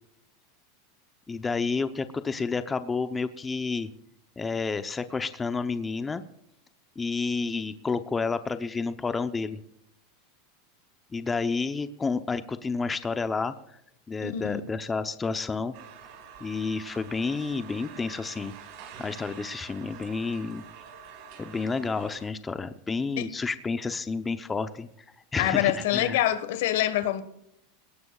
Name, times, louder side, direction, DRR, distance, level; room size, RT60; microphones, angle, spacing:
voice 1, 1.3-3.9 4.4-6.2 7.0-9.6 11.1-13.5 14.1-15.7 16.4-18.5 19.0-20.6 21.4-24.9 25.3-26.2, left 4 dB, 15° left, 0.7 m, -30 dB
voice 2, 14.2-14.6 23.2-23.3 25.4-27.2, left 13 dB, 75° left, 1.4 m, -25 dB
sound 1, 15.7-22.3, right 7 dB, 60° right, 5.2 m, -47 dB
21.0 x 18.0 x 2.4 m
supercardioid pair, 130°, 0 cm